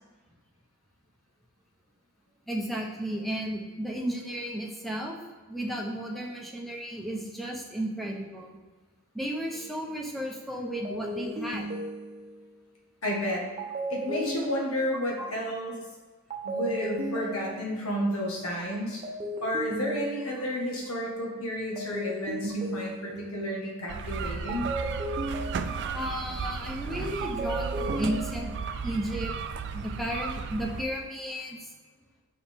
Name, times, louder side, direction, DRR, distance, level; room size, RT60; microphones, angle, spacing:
voice 1, 2.5-5.1 5.5-8.5 9.1-11.7 15.2-15.3 25.9-28.5 28.8-29.3 29.7-31.6, equal, ahead, -1 dB, 0.8 m, -33 dB
sound 1, 9.5-9.8 10.8-12.6 13.6-15.3 16.3-18.0 19.0-20.7 21.8-23.5 24.5-26.2 27.2-28.6, right 1 dB, 30° right, 0.7 m, -36 dB
voice 2, 13.0-13.4 13.9-15.8 16.4-19.0 19.4-24.7 31.5-31.6, equal, 80° left, -2 dB, 1.4 m, -31 dB
sound 2, 23.9-30.8, right 5 dB, 55° right, 0.4 m, -34 dB
5.8 x 4.7 x 3.6 m, 1.3 s
head